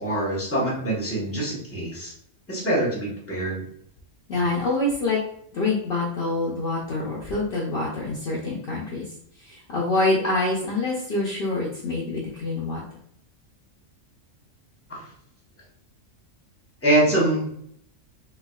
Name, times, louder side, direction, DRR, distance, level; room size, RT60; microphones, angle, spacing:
voice 1, 0.0-2.1 2.5-3.6 14.9-15.1 16.8-17.5, right 1 dB, 10° left, -5 dB, 1.0 m, -24 dB
voice 2, 4.3-5.2 5.5-9.1 9.5-12.8, left 2 dB, 55° left, -4 dB, 0.8 m, -26 dB
3.4 x 3.1 x 2.3 m, 0.67 s
omnidirectional pair, 1.3 m